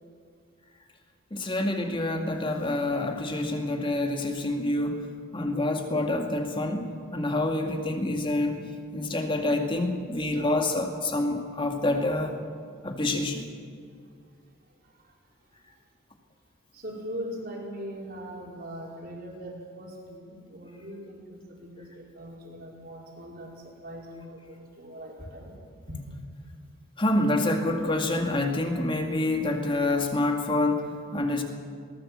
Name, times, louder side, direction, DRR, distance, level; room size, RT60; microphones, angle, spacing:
voice 1, 1.3-8.7 8.9-12.4 12.8-13.4 27.0-31.4, left 2 dB, 25° left, 3 dB, 2.1 m, -27 dB
voice 2, 16.7-25.6 25.9-26.0, equal, 50° right, -1 dB, 4.7 m, -40 dB
21.0 x 19.0 x 7.4 m, 2.2 s
head